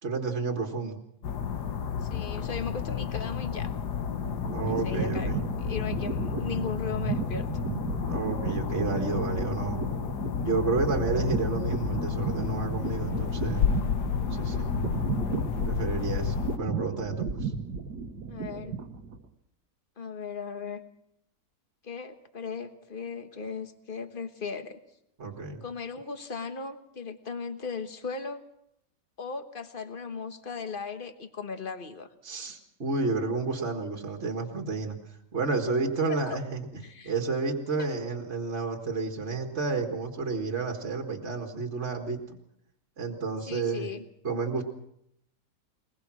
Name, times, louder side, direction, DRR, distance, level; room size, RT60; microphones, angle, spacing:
voice 1, 0.0-1.0 4.5-5.4 8.1-9.8 10.4-13.6 14.3-14.7 15.6-17.5 25.2-25.6 32.2-35.0 35.3-42.4 43.0-43.9 44.2-44.6, right 4 dB, 40° right, 3 dB, 2.0 m, -31 dB
sound 1, 1.2-16.6, left 7 dB, 75° left, 1.8 m, -31 dB
voice 2, 2.0-3.7 4.7-7.5 18.3-18.8 20.0-20.8 21.8-24.8 25.6-28.4 29.2-32.1 36.0-36.4 36.8-37.1 37.8-37.9 43.5-44.0, left 5 dB, 35° left, 9 dB, 1.4 m, -37 dB
sound 2, 3.8-19.3, right 5 dB, 75° right, 1.9 m, -34 dB
22.0 x 21.0 x 6.2 m, 0.76 s
omnidirectional pair, 1.8 m